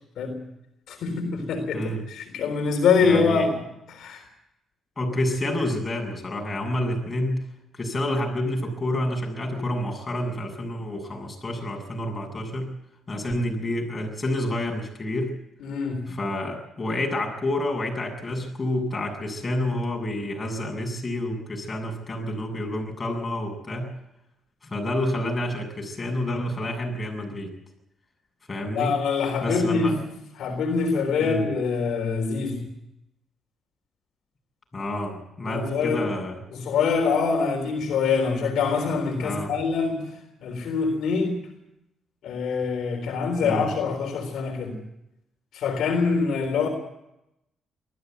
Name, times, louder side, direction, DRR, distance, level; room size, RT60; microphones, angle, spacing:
voice 1, 0.9-4.2 15.6-16.2 28.7-32.7 35.4-36.1 36.5-41.5 42.2-44.8 45.5-46.7, left 5 dB, 75° left, 3 dB, 3.7 m, -25 dB
voice 2, 3.0-3.5 5.0-7.4 7.7-12.7 13.1-15.3 16.1-23.9 24.7-27.5 28.5-28.9 29.4-30.0 31.2-31.4 34.7-36.4 39.2-39.5 43.4-43.7, left 1 dB, 25° left, 1 dB, 7.8 m, -29 dB
19.5 x 14.0 x 9.4 m, 0.86 s
cardioid pair, 90°, 0 cm